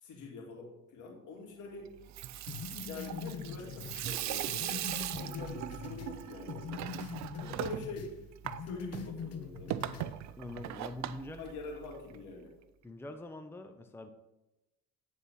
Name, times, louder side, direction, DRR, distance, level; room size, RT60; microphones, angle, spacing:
voice 1, 0.0-1.9 2.8-4.8 5.1-6.9 7.3-8.1 8.6-10.0 11.4-12.5, left 3 dB, 70° left, -1 dB, 2.4 m, -45 dB
Water tap faucet / Sink (filling or washing), 2.0-12.2, right 13 dB, 60° right, 0.5 m, -40 dB
sound 1, 2.5-6.2 6.5-8.1 8.4-10.1, left 7 dB, 50° left, 0.9 m, -43 dB
voice 2, 10.4-11.5 12.8-14.1, left 1 dB, 5° left, 7 dB, 0.7 m, -44 dB
9.3 x 4.2 x 5.5 m, 0.96 s
supercardioid pair, 70°, 31 cm